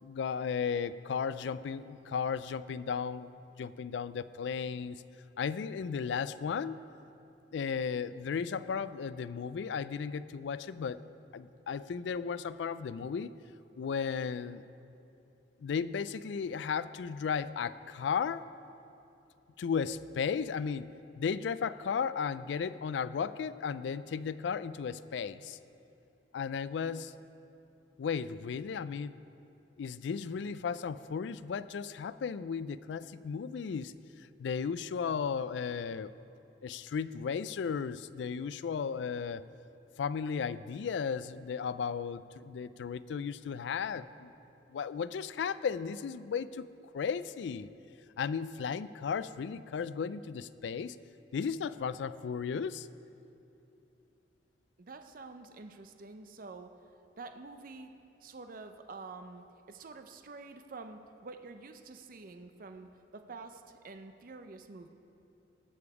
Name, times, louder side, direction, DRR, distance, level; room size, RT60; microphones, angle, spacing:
voice 1, 0.0-5.0 5.4-6.8 7.5-11.0 11.3-13.3 13.8-14.6 15.6-18.5 19.6-20.9 21.2-25.6 26.3-27.1 28.0-29.1 29.8-33.9 34.2-36.1 36.6-39.4 40.0-44.3 44.7-46.6 46.9-47.7 48.2-51.0 51.3-52.9, left 6 dB, 75° left, 15 dB, 0.3 m, -35 dB
voice 2, 54.8-56.7 57.2-57.9 58.2-64.9, right 3 dB, 50° right, 7 dB, 0.6 m, -48 dB
18.5 x 7.0 x 4.8 m, 2.8 s
head